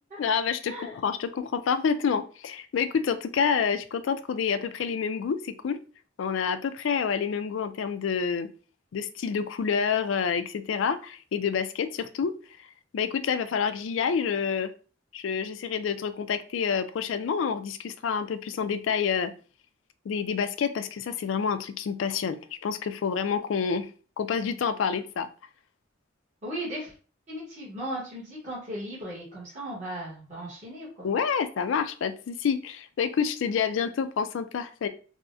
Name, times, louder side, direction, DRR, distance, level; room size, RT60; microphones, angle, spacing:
voice 1, 0.2-5.8 6.2-8.5 8.9-12.3 12.9-14.7 15.1-19.3 20.1-23.9 24.2-25.3 31.0-34.9, left 6 dB, 70° left, 10 dB, 0.3 m, -28 dB
voice 2, 26.4-26.9 27.3-31.1, right 1 dB, 40° right, -7 dB, 1.1 m, -37 dB
3.5 x 2.1 x 2.5 m, 0.38 s
head